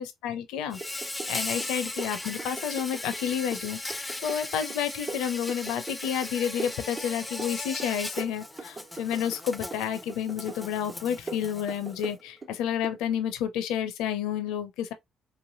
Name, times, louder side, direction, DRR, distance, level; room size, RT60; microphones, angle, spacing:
voice 1, 0.0-14.9, left 9 dB, 80° left, 0.5 m, -30 dB
Insect, 0.7-12.1, left 2 dB, 15° left, 0.5 m, -38 dB
sound 1, 0.8-1.4 1.6-3.2 3.5-6.3 6.6-7.5 7.8-9.4 9.7-10.6 10.9-12.5 12.8-13.0, right 3 dB, 40° right, 1.2 m, -40 dB
3.1 x 2.6 x 2.5 m
hypercardioid pair, 55°, 0 cm